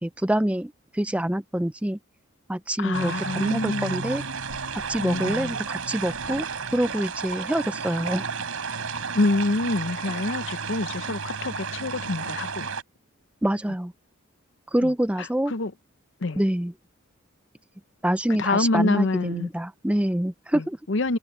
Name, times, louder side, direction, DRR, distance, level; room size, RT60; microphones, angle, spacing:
voice 1, 0.0-2.0 2.5-4.2 4.9-6.5 6.7-8.3 13.4-13.9 14.7-15.5 16.4-16.7 18.0-20.8, right 1 dB, 5° right, 0.4 m, -26 dB
voice 2, 2.8-4.0 5.0-5.5 9.1-12.7 14.8-14.9 15.2-15.7 16.2-16.4 18.4-19.5 20.5-21.2, left 2 dB, 55° left, 0.7 m, -26 dB
sound 1, 2.9-12.8, right 5 dB, 85° right, 3.8 m, -32 dB
head